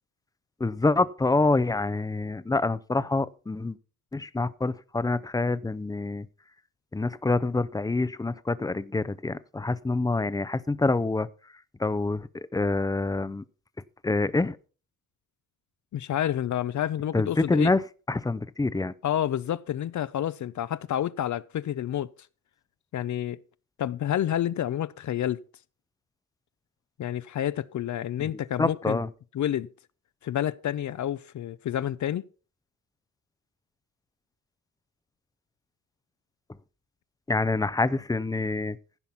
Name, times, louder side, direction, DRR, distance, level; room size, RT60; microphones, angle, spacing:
voice 1, 0.6-3.8 4.1-6.3 6.9-11.3 11.8-13.4 14.0-14.6 17.1-17.8 18.1-18.9 28.2-28.3 28.6-29.1 37.3-38.8, left 3 dB, 10° left, 0.5 m, -26 dB
voice 2, 15.9-17.7 19.0-22.1 22.9-23.4 23.8-25.4 27.0-29.0 29.3-29.7 30.2-32.2, left 11 dB, 60° left, 0.5 m, -29 dB
15.5 x 5.8 x 5.5 m
cardioid pair, 120°, 34 cm